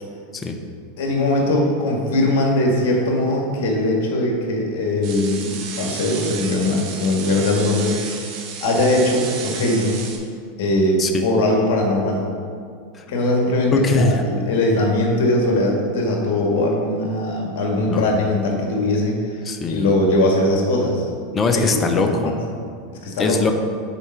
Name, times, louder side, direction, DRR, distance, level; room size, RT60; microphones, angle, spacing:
voice 1, 1.0-10.0 10.6-12.3 13.1-21.1 21.9-22.3 23.0-23.4, left 1 dB, 65° left, 0 dB, 1.8 m, -20 dB
sound 1, 5.0-10.2, right 5 dB, 55° right, 1.2 m, -32 dB
voice 2, 13.7-14.2 17.9-18.0 19.4-19.9 21.3-22.3 23.2-23.5, left 3 dB, 25° left, 5 dB, 0.7 m, -21 dB
7.1 x 4.4 x 5.8 m, 2.2 s
hypercardioid pair, 110°, 0 cm